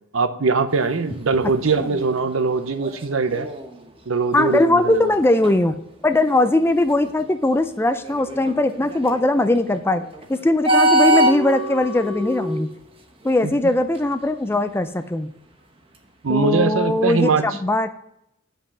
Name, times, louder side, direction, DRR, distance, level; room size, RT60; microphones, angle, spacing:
voice 1, 0.1-3.5 4.1-5.1 13.4-13.5 16.2-17.5, right 4 dB, 70° right, 10 dB, 0.8 m, -21 dB
sound 1, 0.7-7.2 8.0-13.6 14.0-14.3 15.9-16.0, right 1 dB, 25° right, 1.0 m, -25 dB
voice 2, 4.3-5.8 6.0-10.0 10.3-12.7 13.2-15.3 16.3-17.9, left 2 dB, 10° left, 10 dB, 0.4 m, -20 dB
7.3 x 5.6 x 6.8 m, 0.79 s
head